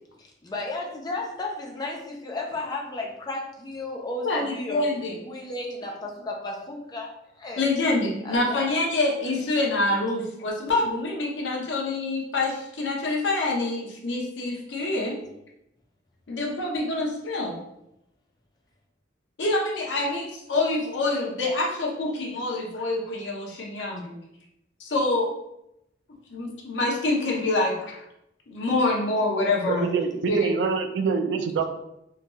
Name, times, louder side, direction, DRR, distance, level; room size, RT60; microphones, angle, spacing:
voice 1, 0.2-7.1 7.4-7.7 8.2-8.6, left 2 dB, 20° left, -1 dB, 0.4 m, -34 dB
voice 2, 4.2-5.1 7.6-15.2 16.3-17.6 19.4-24.2 24.8-25.3 26.3-28.0 28.5-29.9 30.3-30.5, left 2 dB, 90° left, -1 dB, 0.7 m, -26 dB
voice 3, 29.7-31.7, right 5 dB, 75° right, 7 dB, 0.3 m, -25 dB
2.8 x 2.2 x 2.9 m, 0.83 s
head